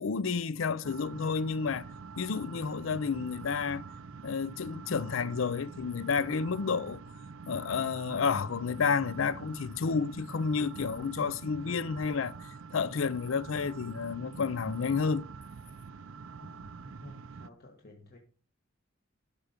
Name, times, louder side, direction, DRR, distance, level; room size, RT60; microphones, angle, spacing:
voice 1, 0.0-1.9 2.2-3.8 4.2-7.0 7.5-12.3 12.7-15.3, left 5 dB, 65° left, 0.5 m, -30 dB
sound 1, 0.8-17.5, right 5 dB, 65° right, 0.5 m, -46 dB
voice 2, 16.4-18.2, left 2 dB, 50° left, 1.6 m, -54 dB
12.5 x 5.7 x 5.1 m
head